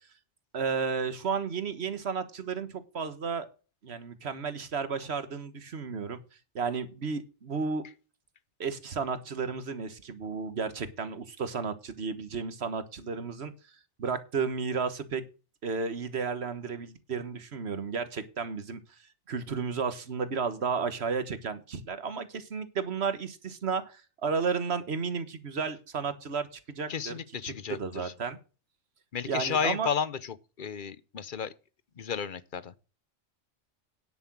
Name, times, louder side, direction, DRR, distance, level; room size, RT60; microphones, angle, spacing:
voice 1, 0.5-3.5 3.8-6.2 6.5-7.8 8.6-13.5 14.0-15.2 15.6-18.8 19.3-27.1 27.4-28.4 29.2-29.9, right 5 dB, 65° right, 1.5 m, -33 dB
voice 2, 26.9-28.1 29.1-31.5 32.0-32.7, left 7 dB, 50° left, 0.9 m, -33 dB
9.9 x 7.8 x 6.1 m
omnidirectional pair, 1.2 m